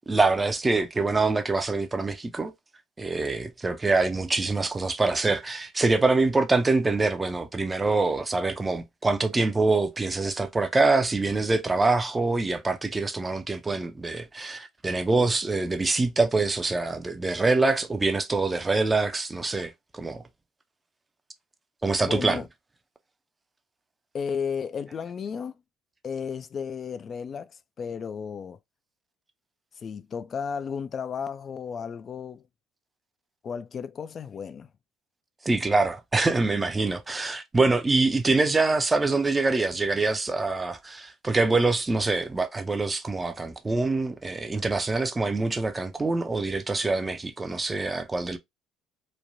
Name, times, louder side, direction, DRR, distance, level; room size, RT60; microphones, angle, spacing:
voice 1, 0.1-2.5 3.0-20.2 21.8-22.4 35.4-48.4, right 3 dB, 20° right, 0.5 m, -25 dB
voice 2, 22.0-22.5 24.1-25.6 26.0-28.6 29.8-32.4 33.4-34.7, left 6 dB, 45° left, 0.3 m, -33 dB
3.1 x 2.1 x 2.5 m
hypercardioid pair, 65°, 0 cm